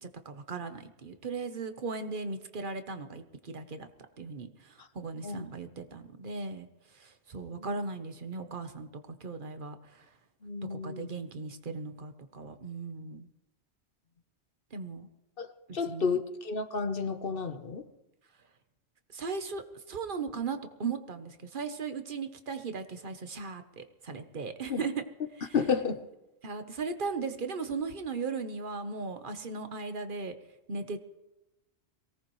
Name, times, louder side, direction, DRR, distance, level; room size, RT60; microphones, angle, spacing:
voice 1, 0.0-3.9 4.2-6.7 6.9-10.0 10.7-13.3 14.7-15.1 15.8-16.1 19.1-25.0 25.4-25.5 26.4-30.3 30.7-31.0, right 4 dB, 50° right, 8 dB, 1.2 m, -37 dB
voice 2, 10.4-11.1 15.4-15.5 15.7-17.8 24.7-24.8 25.5-26.0, left 5 dB, 55° left, 8 dB, 1.2 m, -31 dB
23.0 x 17.5 x 3.2 m, 1.0 s
omnidirectional pair, 1.1 m